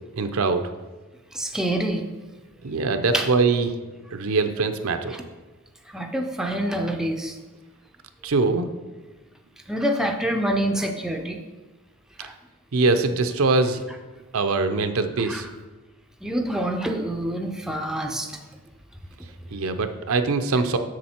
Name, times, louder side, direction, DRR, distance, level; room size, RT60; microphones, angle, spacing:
voice 1, 0.1-0.6 2.6-3.8 4.1-5.2 8.2-8.7 12.7-13.8 14.3-15.5 19.5-20.8, right 3 dB, 75° right, 8 dB, 0.6 m, -22 dB
voice 2, 1.3-2.0 3.1-3.3 5.1-5.2 5.9-7.4 9.7-11.4 12.2-12.3 15.2-15.4 16.2-18.3, right 1 dB, ahead, 3 dB, 0.5 m, -26 dB
7.5 x 6.4 x 4.4 m, 1.2 s
head